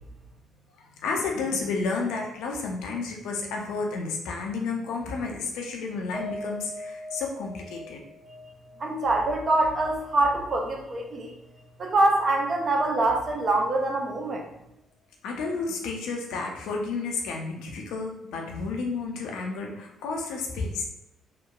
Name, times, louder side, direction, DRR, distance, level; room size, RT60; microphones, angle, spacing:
voice 1, 0.8-8.0 15.2-20.8, left 4 dB, 60° left, 1 dB, 0.4 m, -31 dB
Piano, 6.1-10.6 11.0-11.1 11.5-11.7, left 1 dB, 5° right, 0.8 m, -41 dB
voice 2, 8.8-11.3 11.8-14.4, right 2 dB, 40° right, 1 dB, 0.5 m, -24 dB
2.8 x 2.1 x 2.2 m, 0.89 s
figure-of-eight pair, 45°, 0 cm